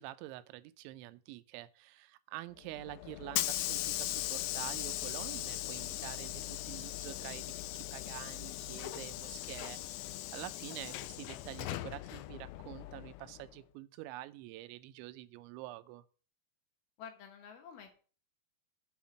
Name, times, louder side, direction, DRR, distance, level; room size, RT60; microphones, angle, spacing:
voice 1, 0.0-16.0, right 16 dB, 85° right, 3.0 m, -47 dB
Hiss / Sliding door, 2.6-13.5, left 16 dB, 90° left, 3.0 m, -39 dB
voice 2, 10.5-11.1 17.0-17.9, left 7 dB, 70° left, 2.8 m, -51 dB
7.4 x 6.3 x 7.1 m
omnidirectional pair, 5.3 m